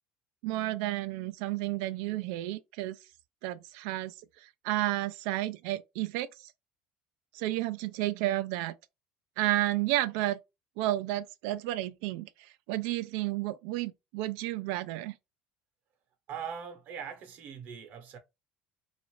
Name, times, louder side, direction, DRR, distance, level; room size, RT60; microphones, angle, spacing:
voice 1, 0.4-3.0 3.4-4.1 4.4-6.3 7.3-8.7 9.4-10.4 10.8-12.3 12.7-15.2, right 16 dB, 80° right, 0.4 m, -31 dB
voice 2, 16.3-18.2, right 7 dB, 60° right, 0.9 m, -41 dB
2.5 x 2.5 x 3.0 m
supercardioid pair, 115°, 4 cm